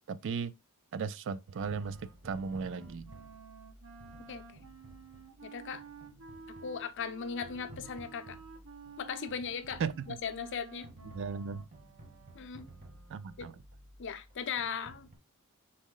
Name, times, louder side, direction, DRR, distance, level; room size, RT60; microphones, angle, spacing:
voice 1, 0.1-0.5 0.9-2.0 2.2-3.1 9.8-9.9 11.1-11.7 13.1-13.5, right 5 dB, 60° right, 0.3 m, -36 dB
sound 1, 1.5-15.2, right 1 dB, 40° right, 1.1 m, -54 dB
Wind instrument woodwind instrument, 1.5-13.5, right 4 dB, 75° right, 1.0 m, -53 dB
voice 2, 5.4-5.8 6.6-8.4 9.0-9.8 10.1-10.9 12.3-12.7 13.4-13.5 14.0-15.1, left 6 dB, 55° left, 0.5 m, -38 dB
4.2 x 3.0 x 3.8 m
head